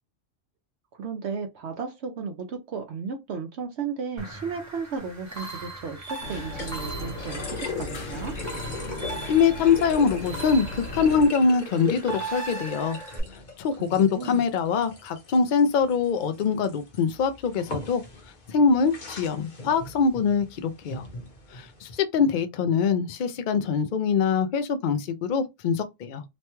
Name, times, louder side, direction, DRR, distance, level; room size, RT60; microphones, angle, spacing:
voice 1, 0.9-8.3 13.9-14.4, right 5 dB, 65° right, 0.8 m, -34 dB
sound 1, 4.2-13.2, right 3 dB, 20° right, 0.5 m, -39 dB
sound 2, 5.0-22.0, left 3 dB, 45° left, 0.9 m, -41 dB
sound 3, 6.2-11.3, left 1 dB, 85° left, 1.1 m, -36 dB
voice 2, 9.3-13.0 13.6-18.0 18.5-21.0 21.5-26.2, left 5 dB, 65° left, 0.5 m, -23 dB
3.1 x 2.2 x 2.9 m
omnidirectional pair, 1.3 m